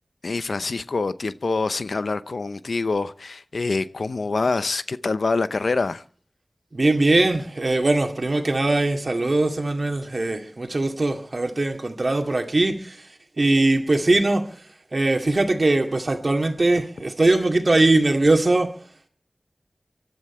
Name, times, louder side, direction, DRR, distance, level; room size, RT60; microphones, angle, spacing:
voice 1, 0.2-6.0, left 3 dB, 90° left, 0.7 m, -25 dB
voice 2, 6.7-13.0 13.4-14.5 14.9-18.7, right 2 dB, 60° right, 2.3 m, -21 dB
24.5 x 12.0 x 4.4 m
wide cardioid pair, 45°, 0 cm